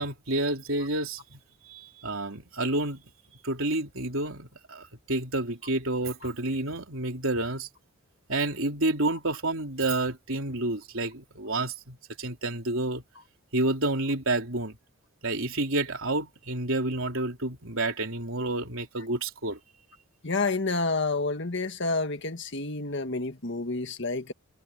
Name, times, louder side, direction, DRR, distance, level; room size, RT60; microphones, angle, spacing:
voice 1, 0.0-1.4 1.7-3.0 3.4-7.7 8.3-13.0 13.5-14.8 15.2-19.6, right 2 dB, 65° right, 3.7 m, -29 dB
voice 2, 20.2-24.3, left 3 dB, 55° left, 1.8 m, -29 dB
head